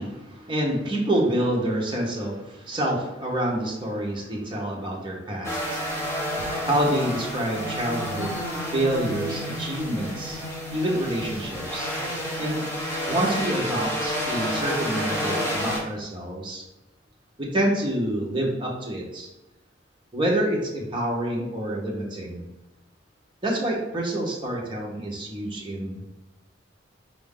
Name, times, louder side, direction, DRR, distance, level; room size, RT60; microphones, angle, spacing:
voice 1, 0.0-6.0 6.6-8.4 8.7-10.4 10.7-11.9 12.4-12.6 13.1-16.6 17.4-19.3 20.1-22.5 23.4-26.1, right 1 dB, 25° right, -2 dB, 0.8 m, -27 dB
sound 1, 5.4-15.8, equal, 15° left, 0.8 m, -30 dB
4.7 x 2.6 x 3.6 m, 0.95 s
head